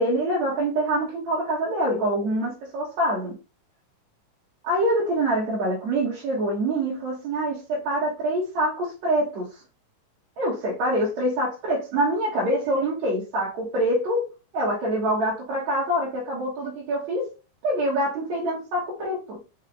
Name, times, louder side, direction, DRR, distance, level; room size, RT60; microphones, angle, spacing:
voice 1, 0.0-3.4 4.6-9.6 10.4-14.3 14.5-17.3 17.6-19.4, right 1 dB, 65° right, 2.2 m, -25 dB
5.6 x 2.4 x 3.8 m
omnidirectional pair, 3.8 m